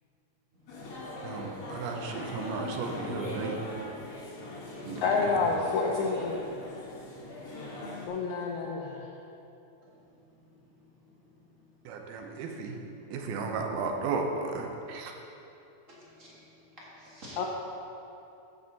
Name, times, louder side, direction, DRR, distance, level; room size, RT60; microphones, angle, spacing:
voice 1, 0.6-1.0 10.8-10.9 15.9-16.4 16.7-17.4, equal, 45° right, -7 dB, 0.9 m, -50 dB
sound 1, 0.7-8.1, left 1 dB, 45° left, 2.3 m, -40 dB
voice 2, 1.2-3.6 4.9-5.4 11.9-12.8 13.1-15.1, right 4 dB, 85° right, 2 dB, 2.8 m, -34 dB
voice 3, 5.0-6.4 8.1-9.0 17.4-17.5, left 4 dB, 80° left, -1 dB, 1.7 m, -28 dB
14.5 x 6.1 x 4.1 m, 2.9 s
omnidirectional pair, 4.3 m